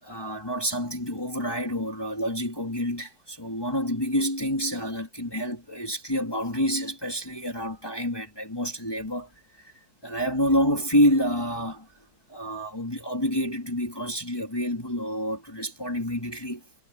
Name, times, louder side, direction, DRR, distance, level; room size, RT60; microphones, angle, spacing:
voice 1, 0.0-9.3 9.6-9.7 10.0-11.9 12.3-16.6, equal, 15° left, 0.7 m, -28 dB
omnidirectional pair, 5.7 m